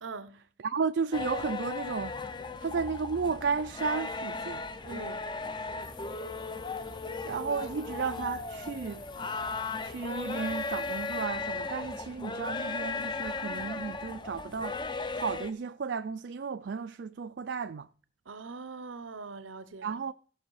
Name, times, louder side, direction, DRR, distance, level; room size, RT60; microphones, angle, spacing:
voice 1, 0.0-0.4 4.9-5.2 18.3-20.0, right 4 dB, 85° right, 0.8 m, -42 dB
voice 2, 0.6-2.2 2.6-4.6 7.2-9.0 9.8-17.9 19.8-20.1, right 5 dB, 60° right, 0.4 m, -33 dB
sound 1, 1.1-15.5, left 3 dB, 25° left, 0.5 m, -36 dB
sound 2, 5.8-11.2, left 4 dB, 45° left, 2.0 m, -54 dB
16.5 x 6.1 x 4.8 m
head